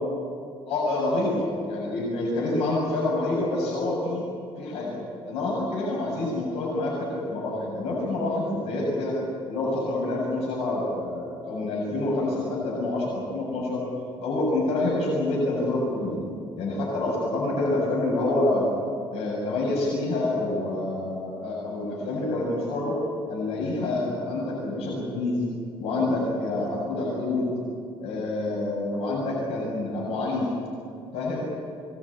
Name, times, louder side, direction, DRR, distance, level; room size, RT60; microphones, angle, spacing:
voice 1, 0.7-4.2 4.6-9.1 9.5-13.8 14.2-16.2 16.6-18.7 19.1-23.0 23.3-25.4 25.8-27.5 28.0-30.5 31.1-31.4, left 2 dB, 90° left, -3 dB, 7.7 m, -27 dB
26.0 x 20.5 x 8.9 m, 2.3 s
cardioid pair, 145°, 10 cm